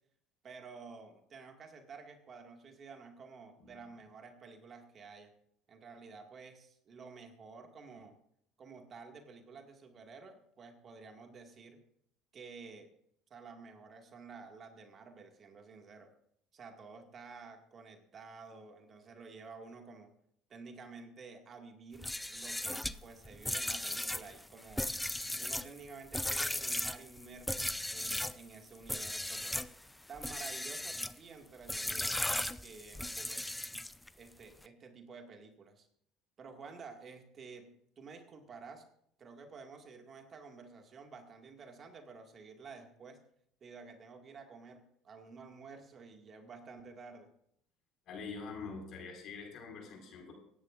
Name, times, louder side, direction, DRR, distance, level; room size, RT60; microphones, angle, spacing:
voice 1, 0.4-5.3 5.7-8.2 8.6-11.8 12.3-12.9 13.3-16.1 16.5-20.1 20.5-24.9 25.4-29.6 30.1-32.3 32.6-33.6 34.2-35.9 36.4-37.7 38.0-38.8 39.2-43.2 43.6-47.3, right 4 dB, 40° right, 4 dB, 2.0 m, -51 dB
sound 1, 21.9-28.4 28.8-29.7 30.2-31.2 31.7-34.1, left 1 dB, 5° left, 0.5 m, -37 dB
voice 2, 48.1-50.3, left 4 dB, 55° left, 1 dB, 5.4 m, -44 dB
24.5 x 10.5 x 2.6 m, 0.70 s
hypercardioid pair, 70°, 0 cm